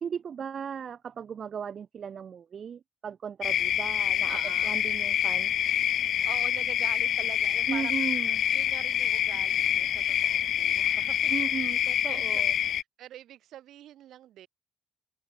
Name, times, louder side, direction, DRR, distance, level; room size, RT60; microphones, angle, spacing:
voice 1, 0.0-5.5 7.7-8.4 11.3-12.5, right 7 dB, 55° right, 2.6 m, -36 dB
sound 1, 3.4-12.8, left 10 dB, 70° left, 0.7 m, -26 dB
voice 2, 4.3-4.8 6.2-8.0 8.5-11.3 11.6-11.7 12.1-14.5, right 12 dB, 80° right, 7.9 m, -45 dB
open air
cardioid pair, 90°, 0 cm